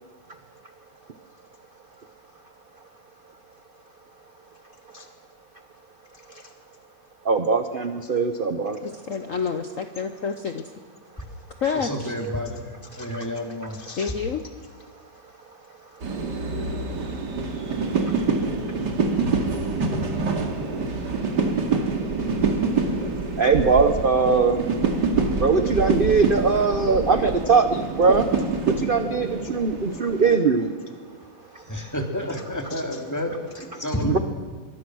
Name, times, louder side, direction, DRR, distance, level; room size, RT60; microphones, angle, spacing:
voice 1, 7.2-8.8 12.9-13.3 13.6-14.1 18.0-18.3 18.7-18.8 23.4-24.6 25.4-30.8 31.5-31.9 32.7-32.8 33.7-34.2, right 4 dB, 40° right, 8 dB, 0.8 m, -22 dB
voice 2, 8.8-10.6 11.6-12.1 14.0-14.4, left 6 dB, 50° left, 7 dB, 1.2 m, -28 dB
voice 3, 11.7-12.6 13.0-13.8 31.7-34.2, equal, 10° left, 2 dB, 2.8 m, -29 dB
sound 1, 16.0-30.4, right 4 dB, 60° right, 2.8 m, -26 dB
25.5 x 23.0 x 6.3 m, 1.5 s
omnidirectional pair, 2.1 m